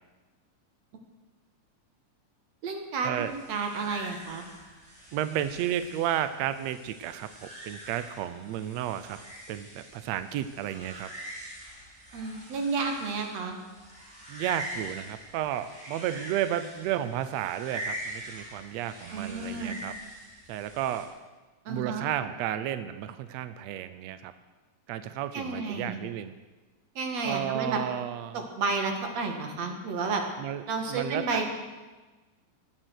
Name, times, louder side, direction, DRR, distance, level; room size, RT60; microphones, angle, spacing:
voice 1, 2.6-4.5 12.1-13.6 19.1-19.8 21.7-22.1 25.3-26.0 27.0-27.8 28.3-30.2 30.7-31.5, right 4 dB, 55° right, 3 dB, 2.9 m, -31 dB
sound 1, 3.2-21.0, right 1 dB, 20° right, 4.9 m, -44 dB
voice 2, 5.1-7.3 7.6-9.2 9.5-11.1 14.3-19.9 20.5-21.1 21.7-24.3 24.9-26.3 27.2-28.4 30.4-30.6 30.9-31.4, right 11 dB, 85° right, 11 dB, 1.5 m, -32 dB
18.0 x 12.0 x 6.4 m, 1.3 s
omnidirectional pair, 3.9 m